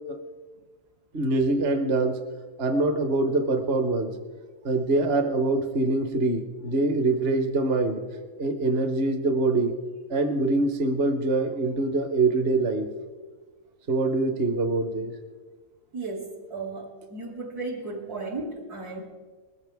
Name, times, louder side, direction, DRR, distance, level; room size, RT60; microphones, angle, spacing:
voice 1, 1.1-2.2 2.6-4.1 4.6-8.0 8.4-9.8 10.1-12.9 13.9-15.1, right 2 dB, 45° right, 7 dB, 1.1 m, -24 dB
voice 2, 15.9-19.0, right 3 dB, 80° right, -2 dB, 2.9 m, -35 dB
20.0 x 14.5 x 3.5 m, 1.4 s
omnidirectional pair, 1.6 m